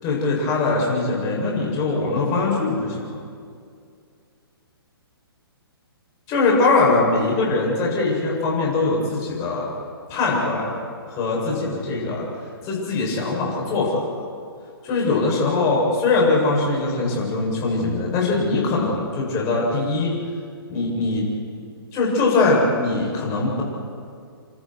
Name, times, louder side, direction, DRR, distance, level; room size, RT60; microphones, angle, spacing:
voice 1, 0.0-3.2 6.3-9.7 10.1-10.7 11.1-12.3 12.6-14.0 14.8-20.1 20.7-21.3 21.9-23.6, left 3 dB, 25° left, -2 dB, 7.7 m, -21 dB
28.5 x 27.5 x 4.8 m, 2.3 s
figure-of-eight pair, 125°, 13 cm